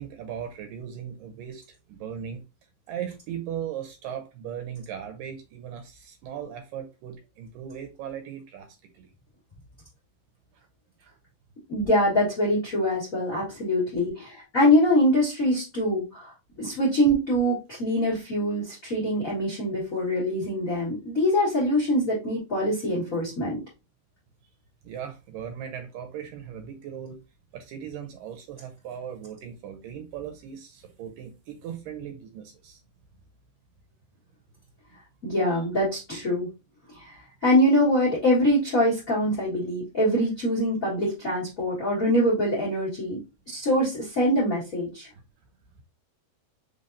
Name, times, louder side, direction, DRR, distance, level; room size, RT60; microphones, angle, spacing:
voice 1, 0.0-2.4 2.9-9.1 10.5-10.7 11.0-11.2 24.8-27.2 27.5-32.8, right 9 dB, 80° right, 5 dB, 2.2 m, -38 dB
voice 2, 11.7-23.6 35.2-36.5 36.9-43.2 43.5-45.1, equal, 50° left, -4 dB, 0.9 m, -24 dB
5.6 x 3.4 x 2.6 m, 0.27 s
omnidirectional pair, 4.4 m